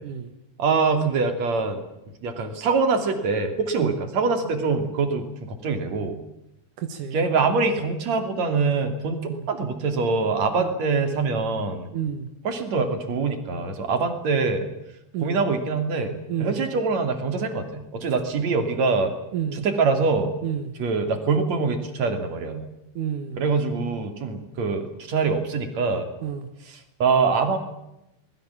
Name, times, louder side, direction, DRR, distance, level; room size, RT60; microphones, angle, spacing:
voice 1, 0.6-1.8 2.2-6.2 7.1-11.9 12.4-14.7 15.2-19.1 19.5-20.3 20.8-22.6 23.4-26.1 26.7-27.6, right 4 dB, 40° right, 6 dB, 3.5 m, -24 dB
voice 2, 6.8-7.3 9.3-9.4 10.6-10.7 11.9-12.3 15.1-15.4 16.3-16.6 19.3-19.6 20.4-20.7 23.0-23.4 26.2-26.5, right 8 dB, 65° right, 7 dB, 2.1 m, -30 dB
25.5 x 21.0 x 7.4 m, 0.86 s
omnidirectional pair, 5.6 m